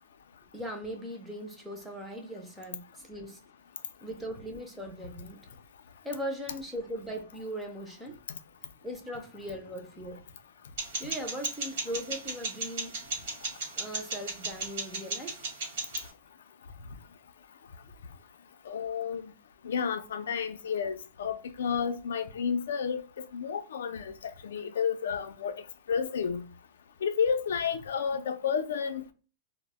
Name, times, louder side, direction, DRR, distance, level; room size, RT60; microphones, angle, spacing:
voice 1, 0.5-3.4 4.0-5.5 6.0-8.2 8.8-10.2 11.0-13.0 13.8-15.4, equal, 5° right, 0.4 m, -39 dB
sound 1, 10.8-16.1, right 3 dB, 55° right, 0.8 m, -36 dB
voice 2, 18.7-19.3 19.6-25.5 25.9-26.4 27.0-29.1, left 6 dB, 85° left, 0.3 m, -31 dB
2.0 x 2.0 x 3.4 m
supercardioid pair, 175°, 0 cm